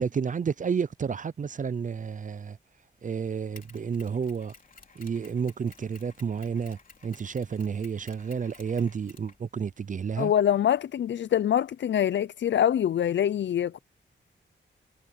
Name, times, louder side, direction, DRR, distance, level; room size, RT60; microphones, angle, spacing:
voice 1, 0.0-2.6 3.0-4.5 5.0-10.3, right 6 dB, 40° right, 0.4 m, -31 dB
Mechanisms, 3.6-9.9, left 4 dB, 40° left, 3.7 m, -54 dB
voice 2, 10.2-13.8, left 10 dB, 65° left, 0.4 m, -24 dB
wide cardioid pair, 150°, 20 cm